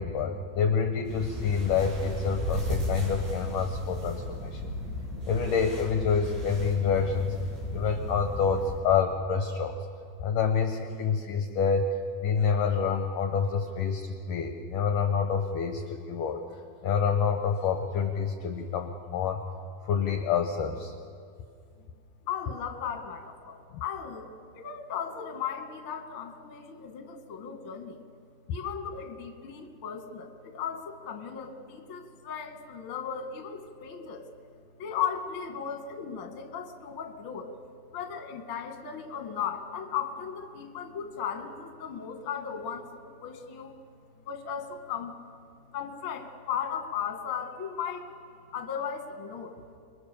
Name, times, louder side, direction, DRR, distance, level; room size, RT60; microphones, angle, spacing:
voice 1, 0.0-4.7 5.3-7.4 7.7-9.8 10.2-11.9 12.2-16.4 16.8-19.4 19.8-20.9, left 6 dB, 70° left, 5 dB, 2.2 m, -27 dB
sound 1, 1.1-8.8, left 1 dB, 65° right, 9.0 m, -35 dB
voice 2, 22.3-24.3 24.6-28.0 28.5-34.3 34.8-37.5 37.9-43.7 44.3-45.1 45.7-48.1 48.5-49.6, left 8 dB, 45° left, 4 dB, 1.9 m, -36 dB
29.0 x 22.5 x 6.9 m, 2.3 s
omnidirectional pair, 4.9 m